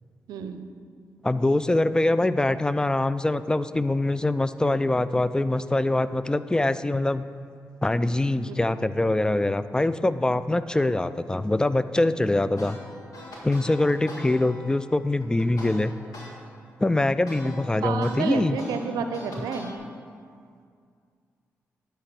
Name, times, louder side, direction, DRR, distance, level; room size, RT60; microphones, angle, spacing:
voice 1, 0.3-0.7 8.5-8.9 17.8-19.8, right 5 dB, 80° right, 8 dB, 0.6 m, -31 dB
voice 2, 1.2-7.2 7.8-12.8 13.4-15.9 16.8-18.6, left 2 dB, 10° left, 14 dB, 0.4 m, -23 dB
sound 1, 12.6-16.3 16.7-19.8, left 1 dB, 75° left, 1.8 m, -42 dB
10.5 x 4.6 x 6.8 m, 2.2 s
supercardioid pair, 45°, 6 cm